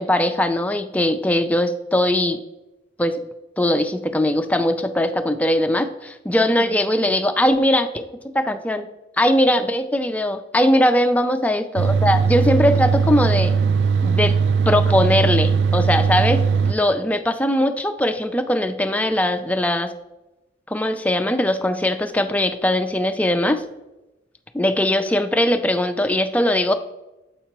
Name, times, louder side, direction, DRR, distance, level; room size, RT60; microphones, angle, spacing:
voice 1, 0.0-2.4 3.0-3.2 3.6-8.0 8.3-8.9 9.2-13.5 14.0-14.4 14.7-19.9 20.7-23.6 24.5-26.7, left 1 dB, 10° left, 7 dB, 0.3 m, -20 dB
sound 1, 11.8-16.7, right 5 dB, 70° right, 0.3 m, -19 dB
7.3 x 5.5 x 2.9 m, 0.99 s
head